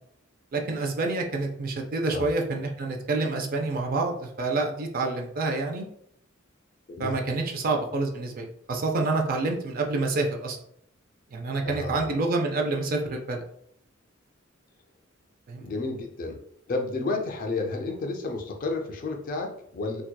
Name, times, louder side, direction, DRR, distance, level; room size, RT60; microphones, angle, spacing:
voice 1, 0.5-5.9 7.0-10.6 11.3-13.4 15.5-15.7, right 3 dB, 45° right, 3 dB, 0.4 m, -28 dB
voice 2, 11.7-12.1 15.6-16.4 16.7-20.0, left 3 dB, 45° left, 2 dB, 0.4 m, -31 dB
2.7 x 2.1 x 2.2 m, 0.69 s
head